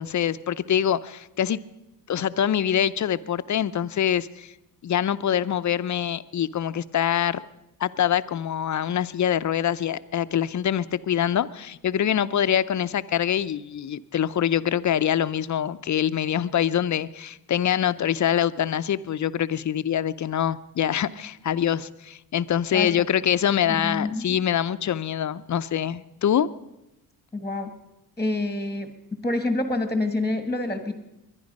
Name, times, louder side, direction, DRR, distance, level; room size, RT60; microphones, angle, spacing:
voice 1, 0.0-1.6 2.1-4.5 4.8-7.4 7.8-26.5, left 10 dB, 50° left, 14 dB, 0.6 m, -24 dB
voice 2, 23.7-24.2 27.3-27.7 28.2-28.9 29.2-30.9, left 2 dB, 10° left, 8 dB, 1.4 m, -27 dB
21.5 x 11.0 x 5.3 m, 0.93 s
cardioid pair, 90°, 38 cm